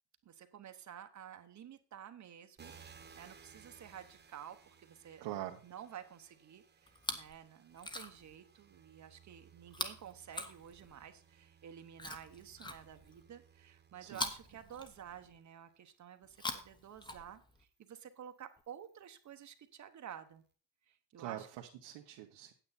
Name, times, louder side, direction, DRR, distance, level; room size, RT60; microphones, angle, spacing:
voice 1, 0.2-2.7 3.2-20.4 20.9-21.5, right 9 dB, 40° right, 8 dB, 1.0 m, -52 dB
sound 1, 2.6-16.0 16.6-19.6, right 6 dB, 25° right, 1.2 m, -62 dB
voice 2, 5.2-5.6 14.0-14.2 21.2-22.5, right 13 dB, 90° right, 1 dB, 1.4 m, -44 dB
Chewing mastication, 6.9-7.4 7.7-8.4 9.7-11.1 12.0-13.2 14.1-15.4 16.2-17.6 18.6-18.7, left 2 dB, 10° left, 1.0 m, -43 dB
9.0 x 8.6 x 4.1 m, 0.41 s
cardioid pair, 150°, 42 cm